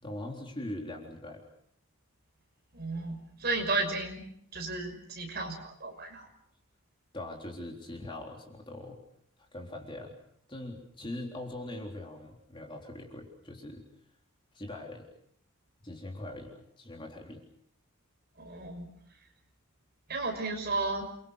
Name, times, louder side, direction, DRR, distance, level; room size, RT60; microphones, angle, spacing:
voice 1, 0.0-1.5 7.1-9.0 9.4-10.2 10.5-13.8 14.5-15.1 15.8-17.4, left 1 dB, 20° left, 1 dB, 3.7 m, -41 dB
voice 2, 2.7-4.2 4.5-6.3 18.4-18.9 20.1-21.1, right 3 dB, 45° right, 4 dB, 6.0 m, -33 dB
29.0 x 23.5 x 6.6 m, 0.69 s
head